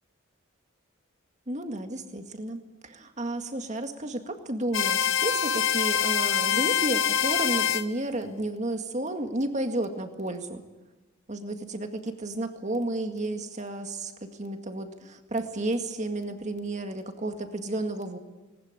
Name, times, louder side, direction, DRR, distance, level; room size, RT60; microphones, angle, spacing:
voice 1, 1.5-10.6 11.3-18.2, right 1 dB, 35° right, 6 dB, 1.9 m, -32 dB
sound 1, 4.7-7.8, left 8 dB, 65° left, 1.0 m, -25 dB
19.5 x 19.5 x 9.0 m, 1.1 s
head